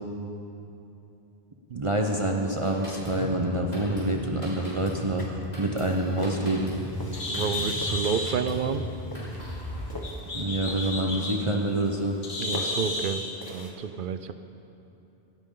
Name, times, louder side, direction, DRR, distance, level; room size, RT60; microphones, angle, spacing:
voice 1, 1.7-6.7 10.3-12.2, right 1 dB, 35° right, 1 dB, 0.9 m, -27 dB
Drum kit, 2.6-9.8, equal, 40° left, 4.6 m, -37 dB
sound 1, 4.6-5.8 6.2-8.0 8.6-8.9 9.1-10.3 10.6-11.5 11.8-13.7, left 1 dB, 20° left, 1.4 m, -41 dB
Bird, 6.1-13.4, left 2 dB, 60° left, 1.6 m, -34 dB
voice 2, 7.3-8.9 12.4-14.3, right 6 dB, 60° right, 11 dB, 0.7 m, -30 dB
17.0 x 15.5 x 3.8 m, 2.9 s
omnidirectional pair, 1.0 m